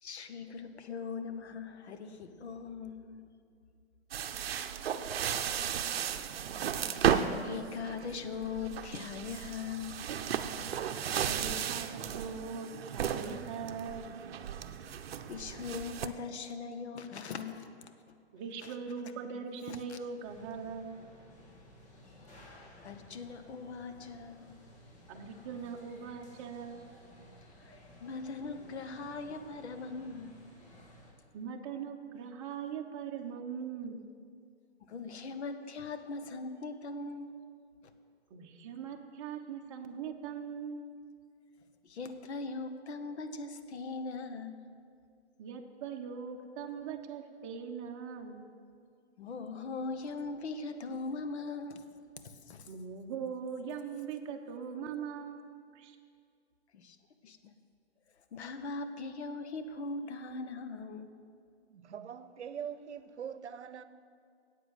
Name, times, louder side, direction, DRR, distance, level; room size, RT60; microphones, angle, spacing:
voice 1, 0.0-3.2 6.9-10.0 15.3-17.9 19.7-20.0 22.8-24.5 28.0-30.3 34.9-37.3 41.8-44.6 49.2-51.8 52.2-52.7 56.7-57.0 57.2-57.5 58.3-61.1, left 4 dB, 75° left, 9 dB, 1.2 m, -40 dB
sound 1, 4.1-16.1, right 8 dB, 60° right, 0.8 m, -34 dB
voice 2, 11.0-14.1 18.3-21.0 25.1-26.8 31.3-34.1 38.3-40.9 45.4-48.5 52.7-55.5 55.7-56.0, right 6 dB, 30° right, 3 dB, 1.0 m, -41 dB
sound 2, 20.2-31.1, left 1 dB, 40° left, 2.6 m, -56 dB
voice 3, 61.7-63.8, right 8 dB, 90° right, 13 dB, 0.8 m, -42 dB
10.0 x 8.4 x 8.0 m, 2.3 s
hypercardioid pair, 155°, 34 cm